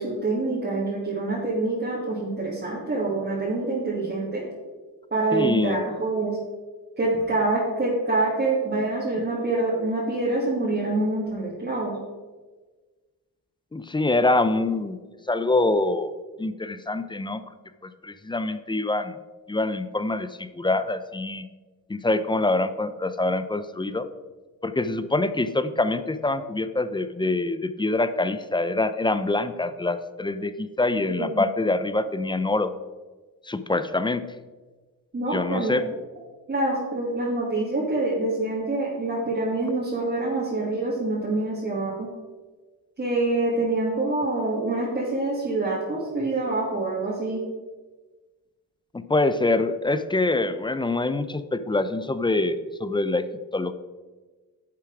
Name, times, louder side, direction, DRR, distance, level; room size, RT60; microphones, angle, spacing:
voice 1, 0.0-4.4 5.1-6.4 7.0-12.0 31.2-31.4 35.1-35.8 36.5-42.1 43.0-47.4, right 2 dB, 30° right, -6 dB, 2.6 m, -26 dB
voice 2, 5.3-5.8 13.7-15.0 15.3-16.1 16.4-17.4 17.8-19.1 19.5-21.5 21.9-24.1 24.6-32.7 33.4-34.2 35.3-35.8 48.9-53.2 53.5-53.7, left 2 dB, 15° left, 12 dB, 0.6 m, -25 dB
11.0 x 7.0 x 4.8 m, 1.3 s
cardioid pair, 100°, 37 cm